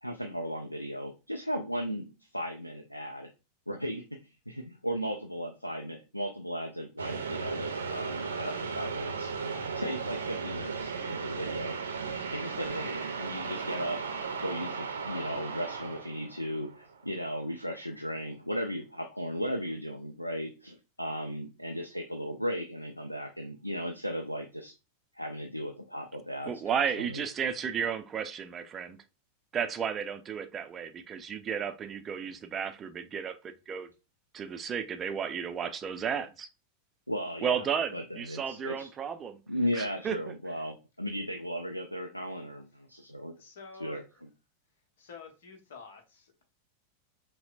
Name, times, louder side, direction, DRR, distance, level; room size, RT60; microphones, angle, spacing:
voice 1, 0.0-3.3 3.7-9.3 9.8-11.8 12.3-24.7 25.1-27.2 37.1-38.9 39.5-43.4 43.8-44.0, equal, 90° left, 0.3 m, -36 dB
sound 1, 7.0-17.2, right 5 dB, 70° right, 0.6 m, -36 dB
voice 2, 26.5-29.0 29.5-33.4 33.7-33.9 34.3-36.5 37.4-39.4 39.8-40.3, right 7 dB, 25° right, 0.4 m, -33 dB
voice 3, 43.4-44.0 45.0-46.4, left 5 dB, 60° left, 0.9 m, -49 dB
5.6 x 2.1 x 2.4 m
figure-of-eight pair, 90°, 0 cm